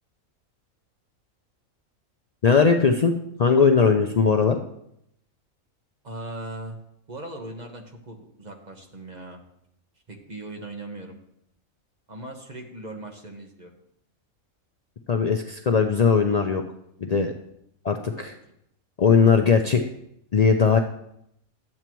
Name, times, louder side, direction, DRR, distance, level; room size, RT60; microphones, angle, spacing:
voice 1, 2.4-4.6 15.1-16.6 17.0-17.3 17.8-18.3 19.0-19.8 20.3-20.8, left 5 dB, 90° left, 4 dB, 0.3 m, -19 dB
voice 2, 6.0-6.8 7.1-9.4 10.1-11.2 12.1-13.7 18.2-18.3, right 2 dB, 35° right, 2 dB, 1.2 m, -39 dB
12.5 x 8.6 x 3.0 m, 0.75 s
omnidirectional pair, 1.4 m